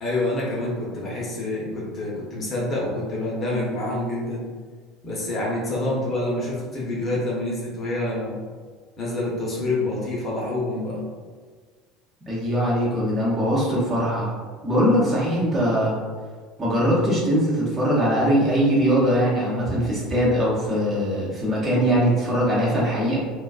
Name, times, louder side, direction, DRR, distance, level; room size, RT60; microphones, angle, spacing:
voice 1, 0.0-4.5 5.0-8.4 9.0-11.0, left 1 dB, 30° left, -5 dB, 0.7 m, -27 dB
voice 2, 12.3-14.3 14.6-15.9 16.6-23.2, equal, 30° right, -6 dB, 0.9 m, -21 dB
2.4 x 2.2 x 2.3 m, 1.5 s
figure-of-eight pair, 70°, 0 cm